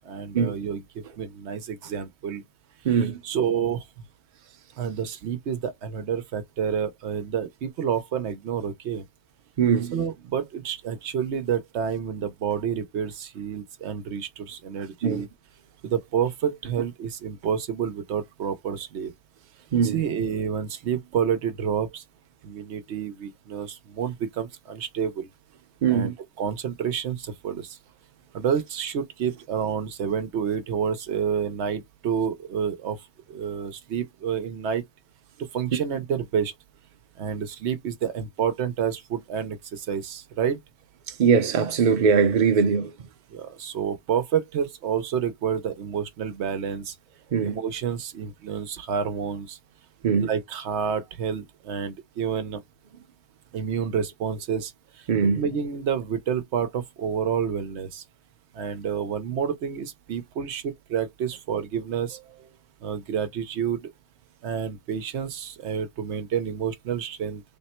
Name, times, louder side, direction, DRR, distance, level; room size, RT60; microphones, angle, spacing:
voice 1, 0.0-2.4 3.2-3.8 4.8-9.0 9.9-15.3 15.8-19.1 19.8-22.0 22.4-25.3 25.9-26.1 26.4-27.8 28.3-33.0 33.3-34.8 35.5-36.5 37.2-40.6 42.3-42.4 43.3-46.9 47.4-49.6 50.2-52.6 53.5-54.7 55.0-55.1 55.3-58.0 58.5-62.5 62.8-63.9 64.4-67.4, right 7 dB, 90° right, 1.0 m, -29 dB
voice 2, 2.8-3.2 9.6-9.9 15.0-15.2 19.7-20.0 25.8-26.1 41.2-42.9 47.3-47.6 50.0-50.3 55.1-55.4, right 6 dB, 50° right, 0.7 m, -21 dB
3.5 x 2.1 x 4.2 m
omnidirectional pair, 1.1 m